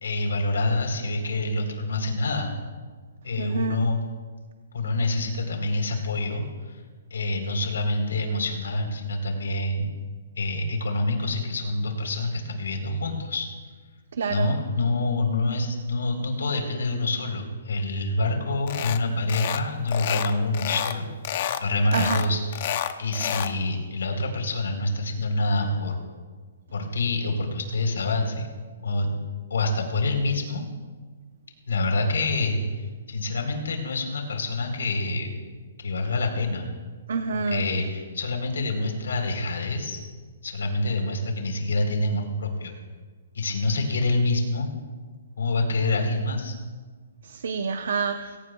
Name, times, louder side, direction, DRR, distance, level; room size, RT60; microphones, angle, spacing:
voice 1, 0.0-2.5 3.2-4.0 4.7-6.8 7.1-9.9 10.4-13.5 14.3-21.1 21.6-22.7 23.0-26.0 26.7-28.5 28.8-29.2 29.5-30.6 31.7-32.6 33.1-35.3 35.8-36.7 37.3-40.0 40.4-42.7 43.3-44.7 45.4-46.5, left 2 dB, 90° left, 3 dB, 3.8 m, -26 dB
voice 2, 3.4-3.8 14.2-14.6 21.9-22.2 37.1-37.6 47.3-48.3, right 5 dB, 60° right, 7 dB, 0.7 m, -27 dB
sound 1, 18.7-19.0 19.3-19.6 19.9-21.0 21.2-21.6 21.9-23.5, left 10 dB, 35° left, 0.6 m, -29 dB
22.5 x 17.5 x 2.3 m, 1.5 s
hypercardioid pair, 175°, 0 cm